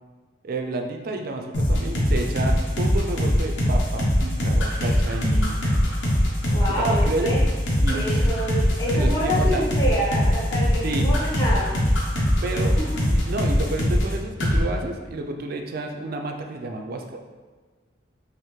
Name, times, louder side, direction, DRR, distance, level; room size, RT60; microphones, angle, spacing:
voice 1, 0.4-5.7 6.8-7.3 7.8-8.2 8.9-9.7 10.8-11.1 12.4-17.2, right 2 dB, 50° right, 4 dB, 0.4 m, -30 dB
sound 1, 1.5-14.1 14.4-14.6, equal, 80° left, 0.9 m, -21 dB
voice 2, 6.5-7.4 7.9-11.7 12.8-12.9, equal, 20° left, -8 dB, 0.9 m, -27 dB
5.4 x 2.0 x 3.1 m, 1.4 s
head